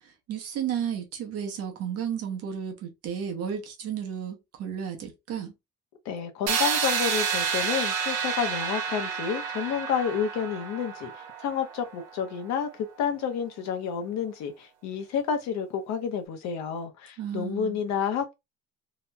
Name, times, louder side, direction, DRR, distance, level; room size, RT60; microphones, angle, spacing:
voice 1, 0.0-5.5 17.2-17.8, right 8 dB, 50° right, 0.8 m, -33 dB
voice 2, 6.1-11.1 11.4-18.3, left 7 dB, 60° left, 0.8 m, -30 dB
sound 1, 6.5-12.3, right 7 dB, 85° right, 0.8 m, -30 dB
2.9 x 2.7 x 2.2 m
cardioid pair, 175°, 30 cm